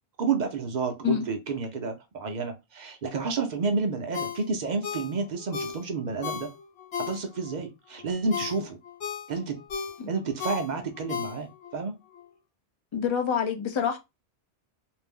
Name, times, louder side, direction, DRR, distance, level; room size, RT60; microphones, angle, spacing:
voice 1, 0.2-6.5 7.0-8.8 9.3-9.6 10.1-12.0, right 4 dB, 50° right, 0.6 m, -30 dB
Ringtone, 4.1-7.6 8.0-11.8 12.1-12.2, left 7 dB, 80° left, 1.1 m, -36 dB
voice 2, 12.9-14.0, left 8 dB, 45° left, 0.4 m, -27 dB
2.6 x 2.0 x 3.5 m
omnidirectional pair, 1.1 m